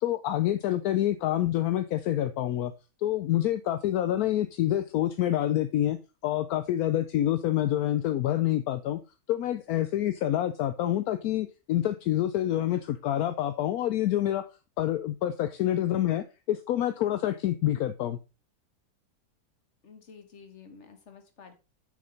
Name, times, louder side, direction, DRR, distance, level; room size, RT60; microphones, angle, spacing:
voice 1, 0.0-2.7 3.0-6.0 6.2-9.0 9.3-14.5 14.8-18.2, left 12 dB, 75° left, 1.1 m, -27 dB
voice 2, 19.8-21.5, left 5 dB, 50° left, 1.7 m, -50 dB
6.7 x 6.6 x 3.9 m
omnidirectional pair, 1.6 m